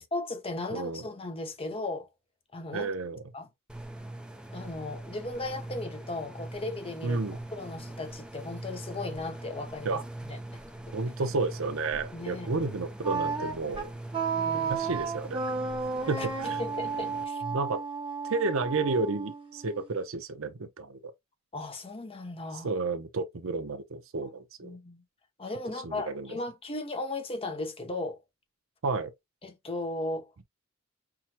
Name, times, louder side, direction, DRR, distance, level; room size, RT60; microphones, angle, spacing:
voice 1, 0.1-2.1 2.5-2.9 3.3-3.5 4.5-7.2 7.5-10.6 10.9-11.0 12.1-12.5 14.3-14.7 16.2-17.4 21.5-22.7 24.2-24.3 24.6-25.0 25.4-28.2 29.4-30.4, left 2 dB, 25° left, 0.9 m, -36 dB
voice 2, 0.7-1.0 2.7-3.2 7.0-7.4 9.8-10.0 10.9-13.9 14.7-15.4 16.1-16.6 17.5-17.8 18.3-21.1 22.6-24.8 25.8-26.3 28.8-29.1, right 3 dB, 70° right, 0.7 m, -31 dB
sound 1, 3.7-17.2, right 1 dB, 5° right, 0.5 m, -42 dB
Wind instrument woodwind instrument, 13.0-20.0, right 5 dB, 25° right, 1.1 m, -33 dB
5.8 x 2.1 x 2.9 m
head